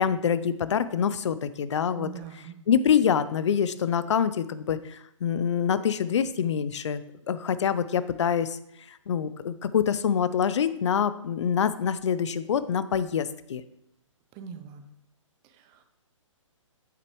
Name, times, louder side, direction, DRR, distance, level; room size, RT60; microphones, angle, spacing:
voice 1, 0.0-2.1 2.7-7.0 7.3-8.6 8.9-13.6, left 8 dB, 60° left, 14 dB, 0.5 m, -25 dB
voice 2, 1.9-2.5 14.3-14.9 15.4-15.8, right 8 dB, 20° right, 8 dB, 0.6 m, -42 dB
8.5 x 6.7 x 3.1 m, 0.82 s
figure-of-eight pair, 135°, 17 cm